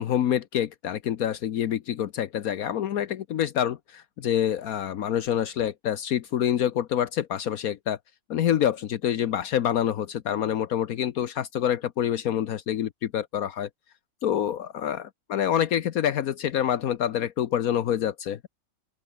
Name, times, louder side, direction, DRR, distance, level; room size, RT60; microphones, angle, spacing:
voice 1, 0.0-8.0 8.3-13.7 14.2-18.5, left 10 dB, 75° left, 1.3 m, -27 dB
open air
omnidirectional pair, 1.6 m